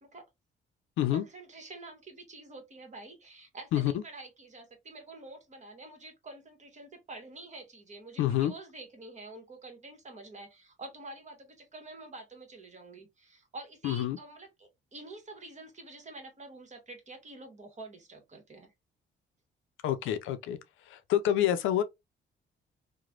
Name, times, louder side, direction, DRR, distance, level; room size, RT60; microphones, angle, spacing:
voice 1, 1.1-18.7, right 2 dB, 35° right, 1.2 m, -48 dB
voice 2, 8.2-8.5 13.8-14.2 19.8-20.6 20.9-21.8, left 11 dB, 80° left, 0.5 m, -27 dB
3.1 x 2.1 x 2.4 m
cardioid pair, 90°, 20 cm